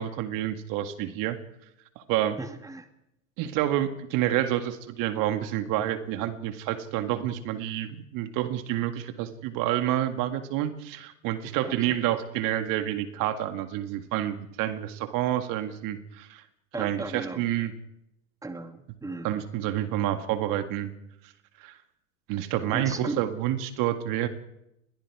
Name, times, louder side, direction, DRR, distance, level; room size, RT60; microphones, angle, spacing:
voice 1, 0.0-1.4 2.0-2.4 3.4-16.4 16.8-17.7 19.2-20.9 21.6-21.8 22.3-24.3, right 12 dB, 50° right, 9 dB, 2.0 m, -28 dB
voice 2, 2.4-2.9 11.6-12.0 16.7-17.4 18.4-19.3 22.7-23.2, right 2 dB, 10° right, 8 dB, 2.1 m, -36 dB
28.5 x 22.0 x 4.9 m, 0.86 s
hypercardioid pair, 95°, 41 cm